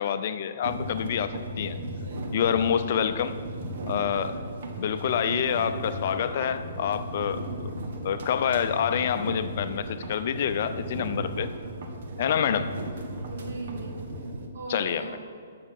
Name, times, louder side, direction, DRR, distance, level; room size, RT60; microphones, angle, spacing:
voice 1, 0.0-1.8 2.3-3.4 3.9-4.4 4.8-7.7 8.0-11.5 12.2-12.7 14.7-15.1, left 8 dB, 50° left, 11 dB, 0.6 m, -27 dB
sound 1, 0.6-14.5, right 1 dB, 60° right, 1.5 m, -36 dB
voice 2, 5.1-5.8 13.3-14.0 14.5-15.2, right 4 dB, 75° right, 0 dB, 2.3 m, -39 dB
9.6 x 6.9 x 6.6 m, 2.2 s
hypercardioid pair, 155°, 0 cm